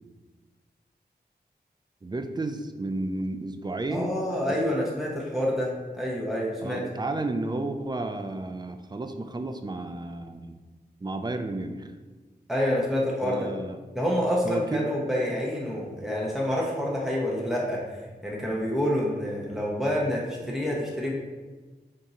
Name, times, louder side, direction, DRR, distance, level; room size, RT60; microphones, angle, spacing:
voice 1, 2.0-4.2 6.6-10.6 11.0-11.9 13.2-13.8 14.4-14.9, right 2 dB, 25° right, 7 dB, 0.4 m, -32 dB
voice 2, 3.9-6.8 12.5-13.5 13.9-17.8 18.2-21.1, equal, ahead, -4 dB, 0.8 m, -27 dB
3.7 x 2.7 x 4.1 m, 1.3 s
wide cardioid pair, 55°, 18 cm